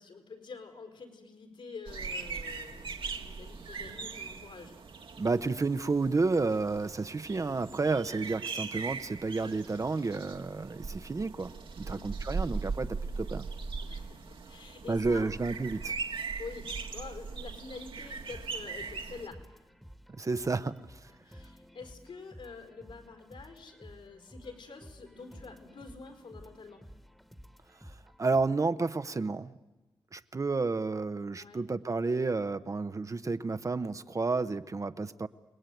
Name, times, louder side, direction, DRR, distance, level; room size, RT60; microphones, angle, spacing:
voice 1, 0.0-4.7 11.8-12.1 13.8-15.3 16.4-19.4 21.2-26.8 31.4-31.6, left 4 dB, 75° left, 6 dB, 4.9 m, -47 dB
sound 1, 1.9-19.3, right 4 dB, 70° right, 1.8 m, -39 dB
voice 2, 5.2-13.5 14.9-15.9 20.2-20.8 28.2-29.5 30.1-35.3, right 3 dB, 35° right, 11 dB, 0.9 m, -31 dB
sound 2, 18.0-28.5, equal, ahead, 1.5 m, -53 dB
28.5 x 19.5 x 9.2 m, 1.1 s
cardioid pair, 80°, 9 cm